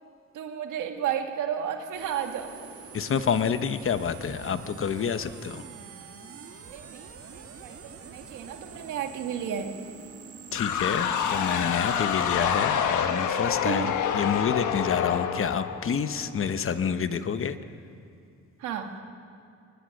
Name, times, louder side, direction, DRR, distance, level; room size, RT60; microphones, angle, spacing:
voice 1, 0.3-2.5 6.7-9.7 13.6-13.9 18.6-18.9, right 9 dB, 90° right, 5 dB, 1.8 m, -33 dB
sound 1, 1.9-13.9, right 6 dB, 50° right, 1.7 m, -46 dB
voice 2, 2.9-5.6 10.5-17.6, left 7 dB, 45° left, 11 dB, 1.1 m, -28 dB
sound 2, 10.5-16.3, left 8 dB, 80° left, 1.4 m, -27 dB
22.5 x 19.5 x 6.5 m, 2.4 s
cardioid pair, 90°, 30 cm